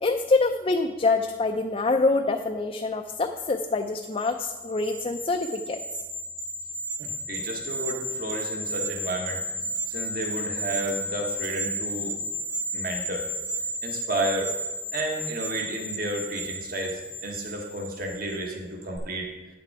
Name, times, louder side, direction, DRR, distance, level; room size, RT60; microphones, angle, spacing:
voice 1, 0.0-5.8, left 3 dB, 30° left, 4 dB, 0.4 m, -25 dB
sound 1, 3.9-18.5 18.8-19.0, right 1 dB, 80° right, 2.4 m, -33 dB
voice 2, 7.0-9.4 9.9-12.1 12.7-13.2 13.8-14.5 14.9-19.3, right 1 dB, 50° right, 1 dB, 1.2 m, -32 dB
9.7 x 6.8 x 4.6 m, 1.2 s
head